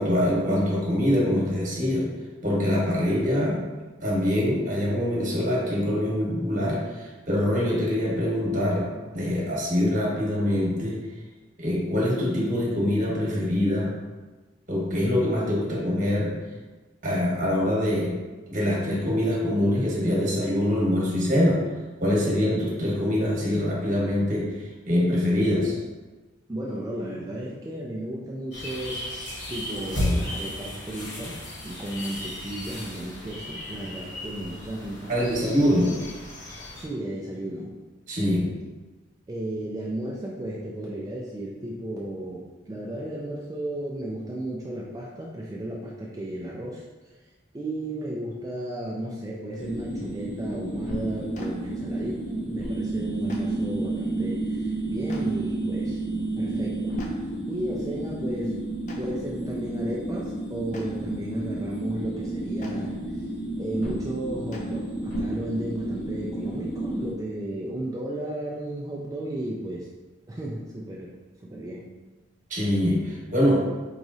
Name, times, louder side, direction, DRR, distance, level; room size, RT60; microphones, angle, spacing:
voice 1, 0.0-2.0 2.4-3.6 4.0-8.9 9.1-11.0 11.6-13.9 14.7-16.3 17.0-18.1 18.5-21.6 22.0-24.4 24.9-25.8 35.1-35.9 38.1-38.4 72.5-73.6, left 1 dB, 40° right, -4 dB, 1.0 m, -24 dB
voice 2, 26.5-35.1 36.8-37.7 39.3-46.8 47.5-56.0 56.4-57.0 57.5-58.6 59.0-63.3 63.6-69.9 70.3-71.2 71.4-71.9, right 1 dB, 20° right, -4 dB, 0.3 m, -34 dB
sound 1, 28.5-36.8, left 1 dB, 60° left, 1.3 m, -34 dB
sound 2, 49.6-67.1, right 2 dB, 80° left, 1.0 m, -31 dB
Clapping, 51.3-51.5 53.3-53.4 55.1-55.2 57.0-57.1 58.9-59.0 60.7-60.8 62.6-62.7 64.5-64.6, left 3 dB, 40° left, 0.5 m, -44 dB
4.7 x 3.0 x 2.6 m, 1.3 s
head